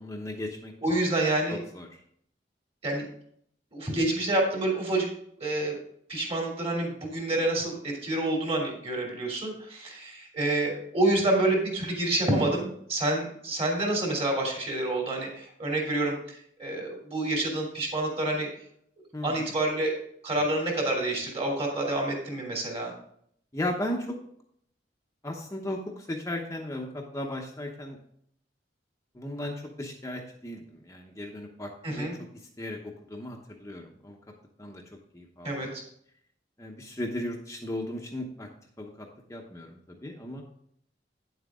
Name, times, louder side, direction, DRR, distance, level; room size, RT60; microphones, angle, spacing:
voice 1, 0.0-0.7 1.7-1.9 19.1-19.5 23.5-24.2 25.2-28.0 29.1-32.1 32.6-34.2 34.6-34.8 35.1-35.7 36.6-38.5 38.8-40.4, left 1 dB, 20° left, 1 dB, 0.9 m, -36 dB
voice 2, 0.8-1.6 2.8-3.1 3.7-5.1 5.4-5.7 6.1-18.5 19.2-20.0 20.2-22.9 31.8-32.2 35.4-35.8, right 2 dB, 35° right, 0 dB, 2.9 m, -28 dB
9.5 x 7.8 x 3.6 m, 0.67 s
head